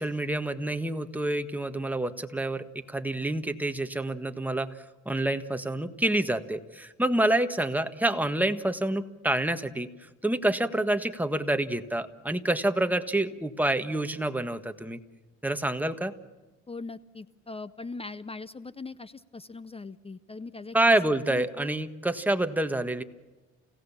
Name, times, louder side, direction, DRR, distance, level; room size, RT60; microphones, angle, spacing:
voice 1, 0.0-4.7 5.0-9.9 10.2-15.0 15.4-16.1 20.7-23.0, right 1 dB, 5° right, 7 dB, 1.5 m, -27 dB
voice 2, 16.7-20.8 21.3-21.8, left 3 dB, 20° left, 16 dB, 0.7 m, -40 dB
29.5 x 17.0 x 7.3 m, 1.2 s
cardioid pair, 90°, 30 cm